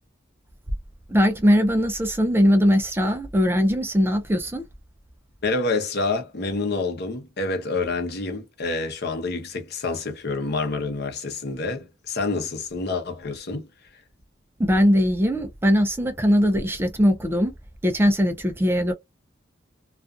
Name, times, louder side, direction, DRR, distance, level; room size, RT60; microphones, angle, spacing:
voice 1, 1.1-4.6 14.6-17.5 17.8-18.9, equal, 10° right, 0.4 m, -20 dB
voice 2, 5.4-13.7, left 3 dB, 60° left, 0.8 m, -27 dB
2.4 x 2.3 x 2.4 m
head